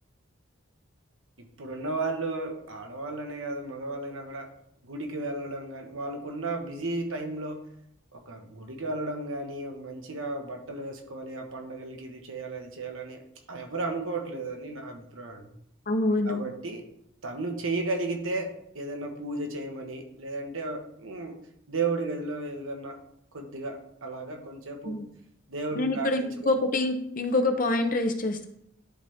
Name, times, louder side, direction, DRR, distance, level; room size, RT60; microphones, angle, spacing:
voice 1, 1.4-4.5 4.8-7.6 8.1-13.2 13.5-15.5 16.3-16.8 17.2-21.4 21.7-23.0 23.3-25.0 25.5-26.5, right 2 dB, 80° right, 3 dB, 1.2 m, -34 dB
voice 2, 15.9-16.5 24.8-25.1 25.7-28.5, left 2 dB, 40° left, 5 dB, 0.8 m, -26 dB
11.0 x 4.2 x 3.6 m, 0.73 s
head